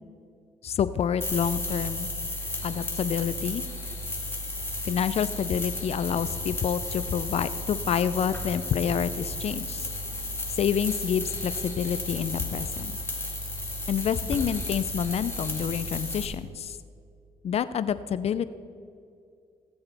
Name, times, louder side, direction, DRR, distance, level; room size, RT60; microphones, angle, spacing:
voice 1, 0.6-2.1 2.6-3.6 4.8-9.9 10.6-12.9 13.9-16.8 17.4-18.5, left 8 dB, 60° left, 14 dB, 0.5 m, -28 dB
sound 1, 1.2-16.3, left 1 dB, 20° left, 2.3 m, -33 dB
19.0 x 7.9 x 3.5 m, 2.4 s
supercardioid pair, 60°, 12 cm